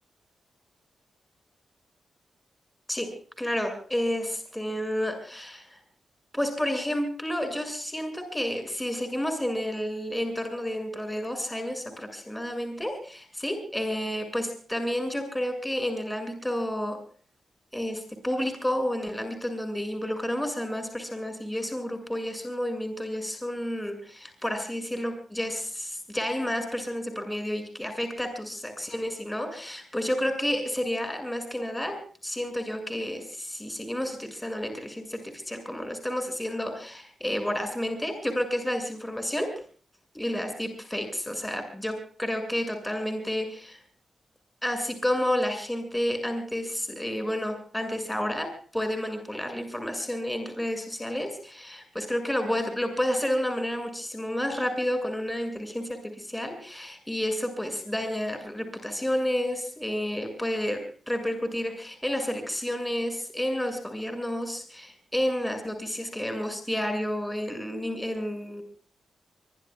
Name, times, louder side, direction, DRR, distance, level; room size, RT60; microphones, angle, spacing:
voice 1, 3.4-5.8 6.3-17.0 17.7-32.0 32.2-39.5 40.1-43.8 44.6-68.6, equal, 10° left, 6 dB, 6.7 m, -30 dB
24.5 x 23.5 x 2.4 m, 0.42 s
cardioid pair, 55°, 0 cm